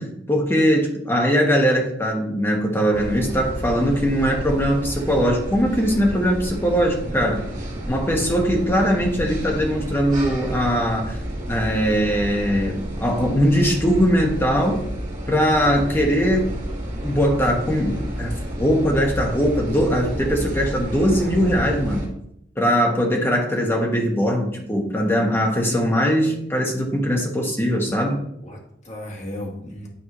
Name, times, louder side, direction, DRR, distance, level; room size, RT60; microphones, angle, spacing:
voice 1, 0.0-7.4 7.9-11.2 11.5-14.9 15.3-16.5 17.0-22.1 22.6-28.2, equal, 15° left, 0 dB, 1.4 m, -21 dB
sound 1, 2.9-22.1, equal, 45° right, 2.4 m, -30 dB
voice 2, 25.5-26.0 28.4-29.9, left 1 dB, 40° left, -1 dB, 1.7 m, -35 dB
10.0 x 4.7 x 3.2 m, 0.74 s
head